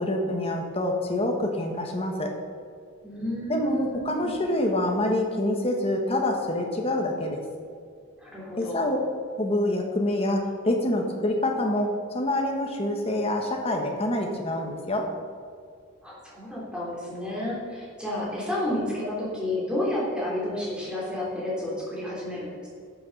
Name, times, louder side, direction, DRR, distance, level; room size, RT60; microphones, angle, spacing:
voice 1, 0.0-2.3 3.5-7.4 8.6-9.0 9.4-15.1, left 1 dB, 30° left, 2 dB, 1.4 m, -26 dB
voice 2, 3.0-4.3 8.2-8.8 16.0-22.7, left 1 dB, 5° right, -6 dB, 3.3 m, -31 dB
12.5 x 6.8 x 5.4 m, 2.2 s
head